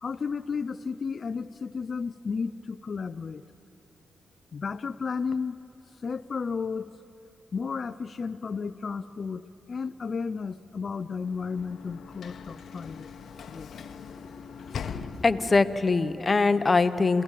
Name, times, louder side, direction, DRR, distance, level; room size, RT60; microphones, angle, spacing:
voice 1, 0.0-3.4 4.5-5.6 6.0-6.9 7.5-13.1 13.5-13.9, left 5 dB, 55° left, 11 dB, 0.5 m, -33 dB
Sliding door / Slam, 11.1-15.8, left 6 dB, 75° left, 0.9 m, -41 dB
voice 2, 14.9-17.2, left 3 dB, 35° left, 11 dB, 1.0 m, -23 dB
27.5 x 16.5 x 7.5 m, 3.0 s
cardioid pair, 65°, 0 cm